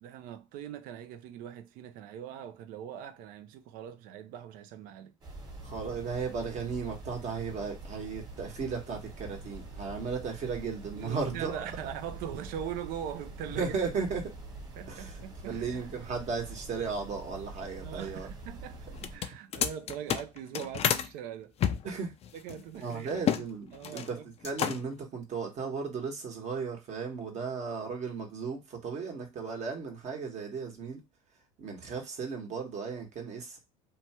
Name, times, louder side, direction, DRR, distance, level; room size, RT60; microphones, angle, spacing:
voice 1, 0.0-5.1 10.9-13.7 14.8-16.0 17.8-21.5 22.3-23.2 23.7-24.2, right 9 dB, 60° right, 0.6 m, -41 dB
sound 1, 5.2-19.2, right 2 dB, 25° right, 1.4 m, -45 dB
voice 2, 5.6-11.6 13.5-14.3 14.9-18.3 21.8-22.2 22.7-31.0 31.6-33.6, right 5 dB, 45° right, 1.3 m, -35 dB
sound 2, 18.9-21.1 21.6-23.5 23.7-24.1 24.4-25.0, left 9 dB, 40° left, 0.4 m, -30 dB
2.9 x 2.3 x 2.8 m
hypercardioid pair, 85°, 16 cm